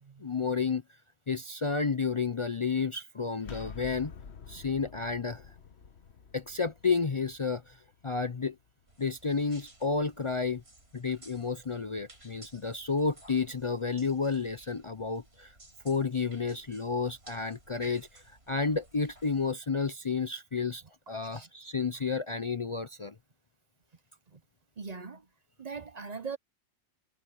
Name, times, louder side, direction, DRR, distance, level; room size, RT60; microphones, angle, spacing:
voice 1, 0.2-0.8 1.3-4.1 4.5-5.4 6.3-7.8 8.0-8.6 9.0-10.6 10.9-15.5 15.8-23.1, left 4 dB, 35° left, 0.6 m, -31 dB
sound 1, 3.4-9.1, left 6 dB, 75° left, 1.4 m, -49 dB
sound 2, 8.9-19.5, right 2 dB, 70° right, 6.9 m, -56 dB
voice 2, 24.8-25.3 25.6-26.4, right 5 dB, 40° right, 0.8 m, -41 dB
omnidirectional pair, 1.1 m